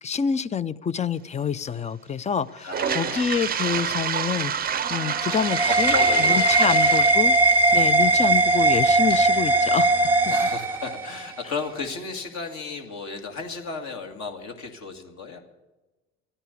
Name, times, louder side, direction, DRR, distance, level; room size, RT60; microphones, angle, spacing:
voice 1, 0.0-7.3 7.7-10.3, left 7 dB, 20° left, 19 dB, 0.5 m, -27 dB
voice 2, 2.6-3.4 5.9-6.9 10.3-15.4, left 4 dB, 50° left, 4 dB, 2.2 m, -34 dB
Toilet flush, 2.6-10.5, right 8 dB, 25° right, 0.6 m, -30 dB
sound 1, 4.8-11.2, right 2 dB, 5° right, 1.0 m, -20 dB
13.5 x 9.9 x 8.2 m, 1.1 s
hypercardioid pair, 80°, 35 cm